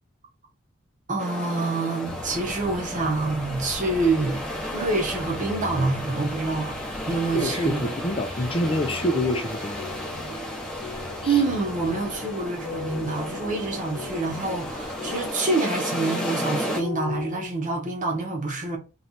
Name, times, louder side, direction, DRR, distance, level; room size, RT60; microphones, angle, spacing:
voice 1, 1.1-4.4 4.7-6.8 7.1-7.9 11.2-18.8, right 3 dB, 35° right, 1.1 m, -26 dB
sound 1, 1.2-16.8, equal, 5° left, 0.9 m, -34 dB
sound 2, 2.0-15.3, equal, 55° right, 1.2 m, -42 dB
voice 2, 7.3-9.9 11.2-11.4, left 1 dB, 25° left, 0.5 m, -27 dB
sound 3, 8.5-17.5, left 5 dB, 50° left, 0.9 m, -40 dB
3.1 x 3.1 x 4.2 m
head